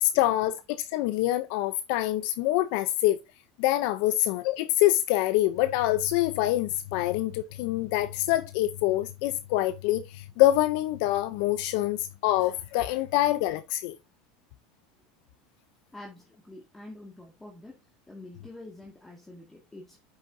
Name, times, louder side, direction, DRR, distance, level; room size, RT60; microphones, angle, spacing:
voice 1, 0.0-3.2 3.6-14.0, left 15 dB, 70° left, 0.6 m, -25 dB
voice 2, 15.9-17.8 18.1-20.0, left 2 dB, 10° left, 1.9 m, -46 dB
8.5 x 6.4 x 2.7 m
supercardioid pair, 115°, 2 cm